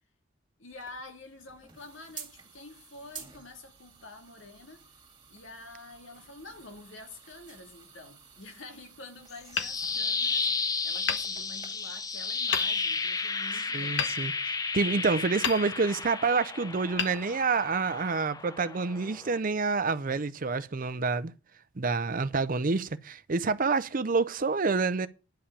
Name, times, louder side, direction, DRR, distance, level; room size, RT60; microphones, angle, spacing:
voice 1, 0.6-4.8 5.3-14.1, left 2 dB, 90° left, 2.3 m, -48 dB
sound 1, 0.7-11.7, right 6 dB, 25° right, 2.3 m, -52 dB
the cube pad espacial, 9.3-19.4, left 4 dB, 20° left, 0.6 m, -33 dB
Hammer, 9.5-10.5 11.0-12.0 12.5-13.1 14.0-14.9 15.4-16.2 16.9-17.9, left 6 dB, 65° left, 1.2 m, -35 dB
voice 2, 13.7-21.3 21.8-25.1, right 4 dB, 45° right, 0.6 m, -28 dB
10.0 x 5.6 x 8.4 m
head